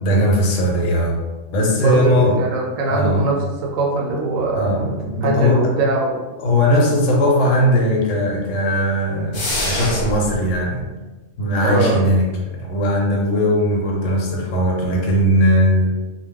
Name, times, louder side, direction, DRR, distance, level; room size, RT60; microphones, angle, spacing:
voice 1, 0.0-1.2 1.5-2.4 2.9-3.3 4.5-5.7 6.4-10.8 11.4-12.3 12.5-15.9, equal, 70° left, 0 dB, 0.9 m, -18 dB
voice 2, 1.8-4.9 5.2-6.2 11.6-12.0, right 2 dB, 75° right, -2 dB, 0.9 m, -21 dB
sound 1, 9.3-10.3, left 1 dB, 50° left, 0.7 m, -24 dB
2.2 x 2.2 x 3.5 m, 1.1 s
omnidirectional pair, 1.4 m